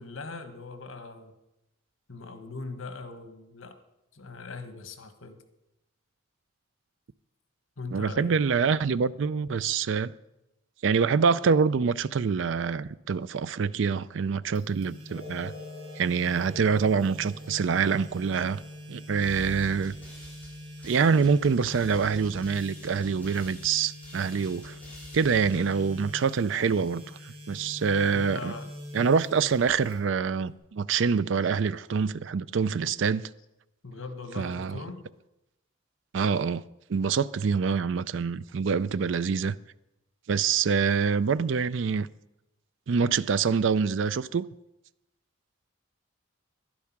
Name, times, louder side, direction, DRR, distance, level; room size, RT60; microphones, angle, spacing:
voice 1, 0.0-1.3 2.1-3.8 4.1-5.4 7.8-8.4 28.1-28.7 33.8-35.0, left 3 dB, 90° left, 1.4 m, -40 dB
voice 2, 7.9-10.1 10.8-15.5 16.0-18.6 18.9-19.9 20.8-24.8 25.1-27.0 27.5-28.5 28.9-33.3 34.4-34.8 36.1-36.6 36.9-39.5 40.3-42.1 42.9-44.5, right 5 dB, 65° right, 0.4 m, -25 dB
sound 1, 14.6-30.5, equal, 30° right, 3.3 m, -44 dB
sound 2, 15.1-22.1, left 2 dB, 60° left, 4.0 m, -49 dB
sound 3, 19.2-26.7, equal, 10° left, 5.1 m, -48 dB
12.0 x 11.0 x 5.9 m
head